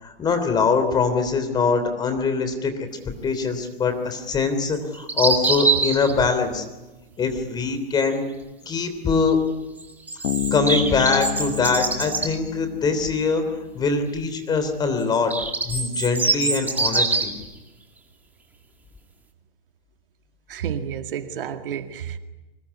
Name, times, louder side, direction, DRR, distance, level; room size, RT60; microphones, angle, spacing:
voice 1, 0.0-2.9 3.2-6.6 7.2-8.2 8.6-9.4 10.5-13.4 13.7-15.3 15.6-17.3, left 4 dB, 15° left, 3.4 m, -23 dB
sound 1, 4.7-6.1 9.8-12.3 15.0-17.4, right 3 dB, 5° right, 2.2 m, -24 dB
Bass guitar, 10.2-13.7, left 14 dB, 50° left, 1.1 m, -30 dB
voice 2, 20.5-22.2, right 8 dB, 65° right, 2.1 m, -30 dB
25.0 x 21.0 x 9.8 m
hypercardioid pair, 155°, 29 cm